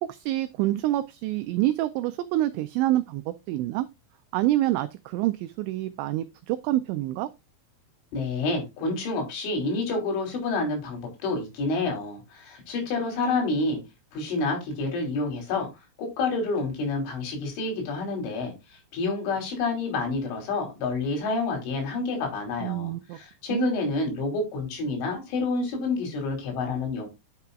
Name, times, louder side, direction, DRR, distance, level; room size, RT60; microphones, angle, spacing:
voice 1, 0.0-3.9 4.3-7.3 22.6-23.2 23.5-23.7, right 15 dB, 85° right, 2.6 m, -27 dB
voice 2, 8.1-13.8 14.1-15.7 16.0-27.1, left 3 dB, 70° left, 5.6 m, -28 dB
11.0 x 6.7 x 2.3 m
omnidirectional pair, 5.8 m